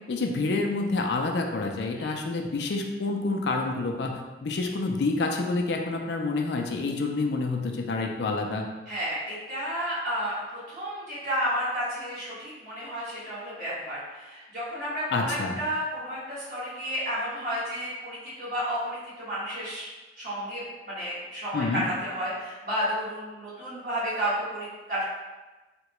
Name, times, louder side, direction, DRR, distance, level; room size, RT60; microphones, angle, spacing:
voice 1, 0.1-8.7 15.1-15.6 21.5-21.8, left 3 dB, 75° left, 2 dB, 0.4 m, -28 dB
voice 2, 8.9-19.9 20.2-25.0, equal, 45° right, -10 dB, 1.5 m, -32 dB
3.7 x 2.2 x 3.0 m, 1.2 s
head